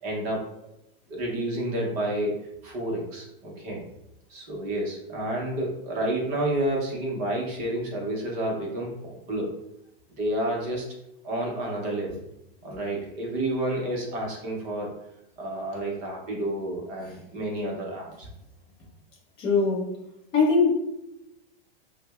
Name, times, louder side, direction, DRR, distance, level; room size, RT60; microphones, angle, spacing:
voice 1, 0.0-0.5 1.1-3.8 4.3-9.5 10.2-10.9 11.2-12.2 12.6-15.0 15.4-18.3, right 1 dB, 25° right, -1 dB, 0.6 m, -30 dB
voice 2, 19.4-20.0 20.3-20.7, left 4 dB, 15° left, -2 dB, 0.6 m, -21 dB
5.7 x 2.0 x 2.3 m, 0.85 s
supercardioid pair, 165°, 29 cm